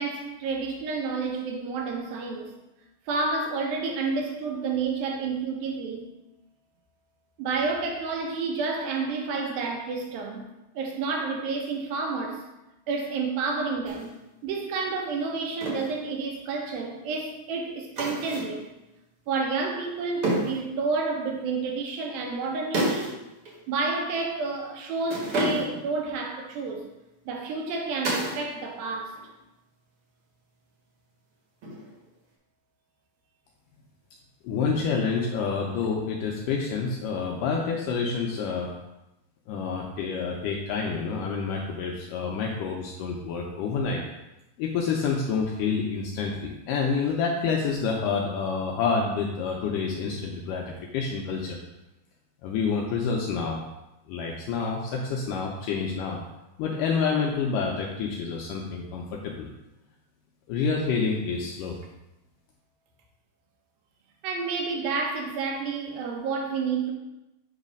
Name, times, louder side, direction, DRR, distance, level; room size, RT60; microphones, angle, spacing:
voice 1, 0.0-2.6 3.1-6.1 7.4-10.5 10.7-12.4 12.9-14.1 14.4-18.7 19.3-23.1 23.7-26.9 27.3-29.2 64.2-66.9, right 4 dB, 75° right, 2.7 m, -30 dB
sound 1, 13.9-14.1 15.6-15.9 18.0-18.6 20.2-20.7 22.7-23.2 23.5-23.6 25.1-25.9 28.0-28.5 28.8-29.3 31.6-32.1, right 1 dB, 50° right, 1.9 m, -29 dB
voice 2, 34.4-38.7 39.5-44.0 44.6-51.6 52.4-53.6 54.1-56.2 56.6-59.5 60.5-61.8, left 5 dB, 80° left, 2.0 m, -28 dB
8.2 x 3.2 x 5.2 m
omnidirectional pair, 4.3 m